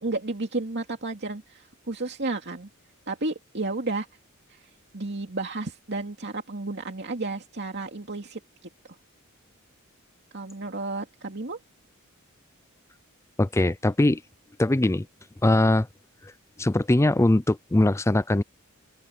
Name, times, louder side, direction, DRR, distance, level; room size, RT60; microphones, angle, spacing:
voice 1, 0.0-2.7 3.1-4.1 4.5-4.6 4.9-8.4 10.3-11.6, right 2 dB, 55° right, 2.6 m, -32 dB
voice 2, 13.4-14.2 14.6-15.1 15.4-15.9 16.6-18.4, left 1 dB, 15° left, 0.5 m, -21 dB
open air
head